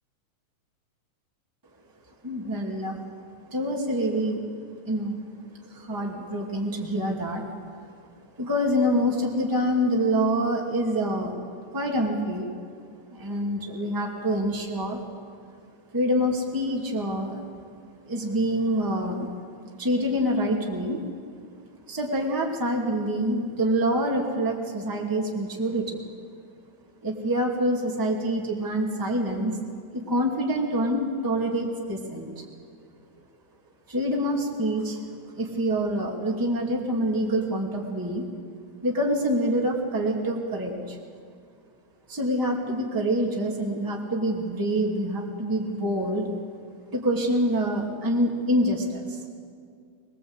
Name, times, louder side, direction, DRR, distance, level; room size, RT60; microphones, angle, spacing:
voice 1, 2.2-3.0 3.5-4.4 4.8-5.2 5.5-7.5 8.4-11.4 11.7-12.5 13.1-15.0 15.9-17.4 18.1-19.3 19.8-21.0 21.9-26.0 27.0-29.6 29.9-32.4 33.9-35.0 35.3-38.2 38.8-41.0 42.1-46.3 46.9-49.2, equal, 5° right, -2 dB, 2.3 m, -26 dB
23.5 x 20.5 x 8.2 m, 2.2 s
omnidirectional pair, 3.8 m